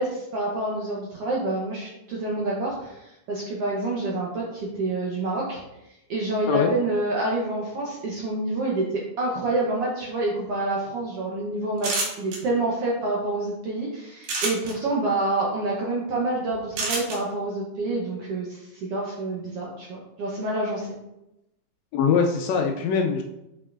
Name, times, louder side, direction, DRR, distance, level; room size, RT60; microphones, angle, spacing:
voice 1, 0.0-5.6 6.1-11.9 12.2-21.0, right 2 dB, 70° right, -3 dB, 1.5 m, -27 dB
sound 1, 11.8-12.4 14.2-14.7 16.8-17.2, right 3 dB, 90° right, 3.0 m, -27 dB
voice 2, 21.9-23.2, left 6 dB, 85° left, 3 dB, 1.5 m, -22 dB
7.0 x 5.5 x 2.4 m, 0.89 s
omnidirectional pair, 3.6 m